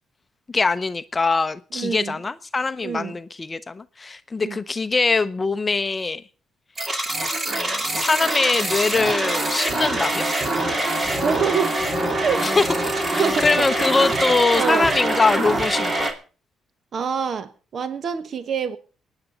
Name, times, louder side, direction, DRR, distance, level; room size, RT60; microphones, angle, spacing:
voice 1, 0.5-6.2 7.5-10.3 12.4-16.1, left 3 dB, 25° left, 0.7 m, -23 dB
voice 2, 1.7-2.1 2.8-3.2 4.4-4.6 11.2-11.7 12.2-12.5 13.2-13.6 14.1-14.9 16.9-18.8, right 6 dB, 55° right, 1.2 m, -26 dB
sound 1, 6.8-16.1, right 1 dB, 30° right, 2.8 m, -24 dB
23.5 x 10.0 x 4.0 m
cardioid pair, 90°, 0 cm